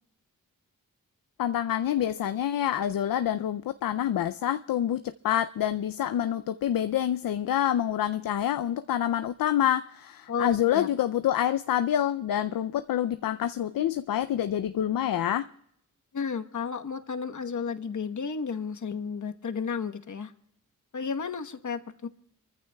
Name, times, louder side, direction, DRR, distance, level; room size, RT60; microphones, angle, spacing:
voice 1, 1.4-15.5, left 11 dB, 75° left, 0.5 m, -27 dB
voice 2, 10.3-10.9 16.1-20.3 20.9-22.1, left 5 dB, 55° left, 1.2 m, -33 dB
29.0 x 14.5 x 2.3 m
cardioid pair, 65°, 35 cm